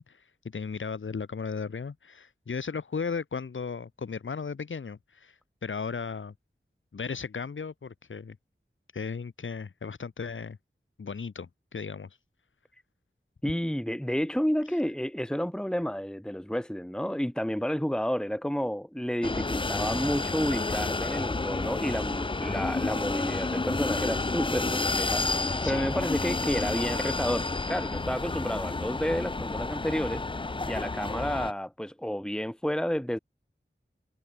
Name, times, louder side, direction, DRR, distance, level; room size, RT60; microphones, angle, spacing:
voice 1, 0.0-6.3 6.9-8.4 8.9-10.6 11.0-12.2 25.6-25.9, left 5 dB, 75° left, 0.7 m, -36 dB
voice 2, 13.4-25.3 25.6-30.2 30.7-33.2, equal, 5° left, 1.5 m, -30 dB
sound 1, 19.2-31.5, left 3 dB, 25° left, 0.4 m, -30 dB
wide cardioid pair, 45°, 21 cm